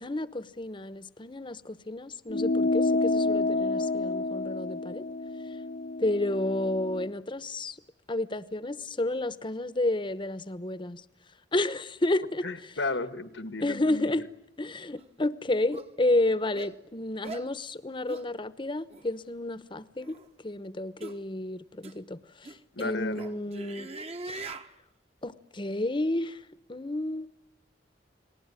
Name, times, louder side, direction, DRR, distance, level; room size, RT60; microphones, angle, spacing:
voice 1, 0.0-5.0 6.0-7.8 8.1-11.0 11.5-12.4 13.6-14.3 14.6-20.2 20.4-23.9 24.3-24.4 25.2-26.4 26.7-27.3, left 2 dB, 25° left, 1.0 m, -31 dB
sound 1, 2.3-7.1, left 2 dB, 60° left, 1.0 m, -29 dB
voice 2, 12.4-14.1 22.7-23.2, left 3 dB, 85° left, 1.8 m, -34 dB
sound 2, 15.0-15.1 15.7-15.9 16.5-16.7 17.2-17.5 18.1-18.3 18.9-19.0 20.0-20.3 21.0-21.2 21.8-21.9 22.4-24.7, right 3 dB, 35° right, 1.3 m, -41 dB
30.0 x 20.0 x 9.8 m
head